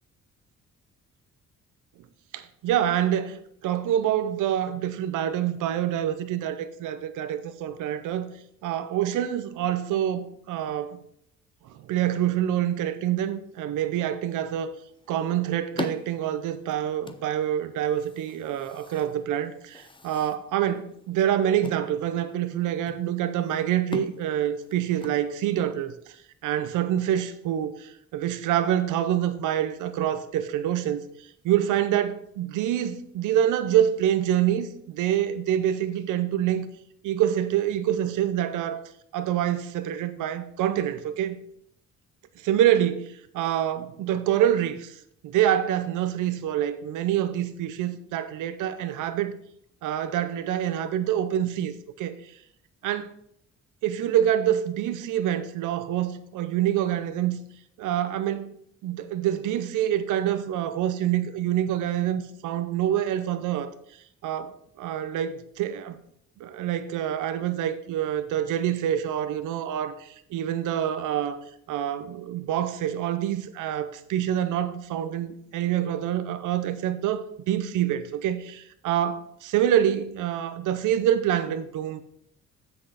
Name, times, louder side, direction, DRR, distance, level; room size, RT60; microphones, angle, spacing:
voice 1, 2.3-8.3 8.6-11.0 11.6-14.7 15.1-36.7 37.0-38.8 39.1-41.4 42.4-49.3 49.8-52.2 52.8-53.1 53.8-57.4 57.8-58.5 58.8-63.7 64.2-66.0 66.4-71.4 71.7-82.0, right 11 dB, 85° right, 0.7 m, -26 dB
sound 1, 14.7-25.8, left 3 dB, 15° left, 0.6 m, -43 dB
7.7 x 6.2 x 4.9 m
cardioid pair, 90°, 30 cm